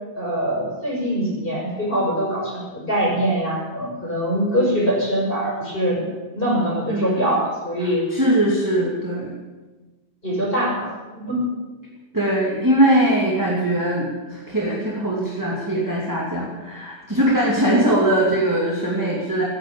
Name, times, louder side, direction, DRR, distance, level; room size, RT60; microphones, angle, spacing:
voice 1, 0.2-6.0 6.3-8.0 10.2-11.4 17.7-17.8, equal, 15° left, -3 dB, 5.8 m, -23 dB
voice 2, 6.9-7.2 7.8-9.3 12.1-19.4, right 1 dB, 5° right, -4 dB, 2.1 m, -21 dB
15.5 x 10.5 x 8.6 m, 1.2 s
omnidirectional pair, 3.7 m